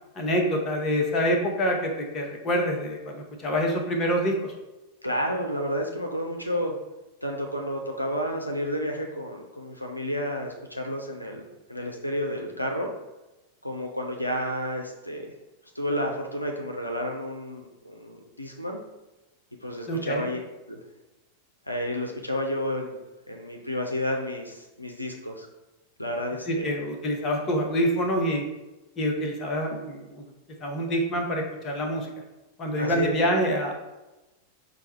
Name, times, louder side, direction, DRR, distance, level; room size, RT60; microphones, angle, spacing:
voice 1, 0.1-4.5 19.9-20.3 26.5-28.4 29.0-30.2 30.6-32.1 32.6-33.7, equal, 25° left, 1 dB, 0.9 m, -26 dB
voice 2, 5.0-6.7 7.2-12.9 13.6-15.3 15.8-18.8 19.6-20.4 20.7-20.8 21.7-25.5 26.0-26.7 32.8-33.1, equal, 85° left, 2 dB, 0.5 m, -31 dB
4.6 x 2.3 x 4.2 m, 1.0 s
figure-of-eight pair, 90°, 0 cm